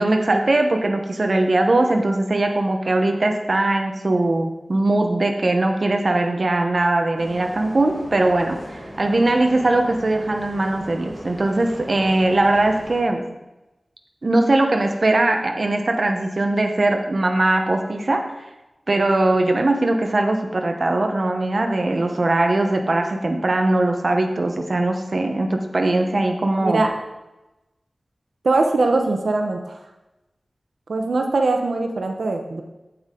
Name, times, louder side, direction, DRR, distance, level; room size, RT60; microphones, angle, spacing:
voice 1, 0.0-13.3 14.2-18.2 18.9-26.8, right 2 dB, 55° right, 4 dB, 0.9 m, -20 dB
Bus, 7.2-13.0, equal, 5° right, 1.9 m, -38 dB
voice 2, 26.6-26.9 28.4-29.8 30.9-32.6, right 3 dB, 90° right, 3 dB, 0.8 m, -21 dB
8.4 x 7.9 x 3.8 m, 1.0 s
wide cardioid pair, 80°, 0 cm